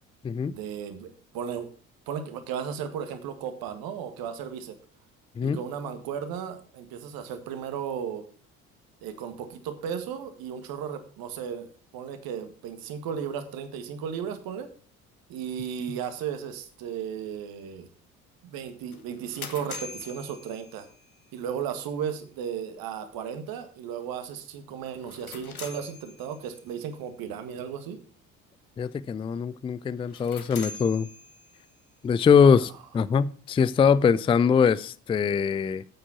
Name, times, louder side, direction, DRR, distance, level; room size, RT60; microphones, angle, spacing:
voice 1, 0.5-1.7 2.1-4.8 5.4-8.3 9.0-14.7 15.3-17.9 18.4-20.9 21.3-28.0 32.4-32.6, right 8 dB, 55° right, 1.9 m, -35 dB
sound 1, 18.9-21.2 24.9-26.6 30.0-31.8, left 4 dB, 90° left, 1.1 m, -43 dB
voice 2, 28.8-31.1 32.0-35.8, left 6 dB, 15° left, 0.4 m, -22 dB
9.0 x 8.7 x 5.8 m
figure-of-eight pair, 55°, 42 cm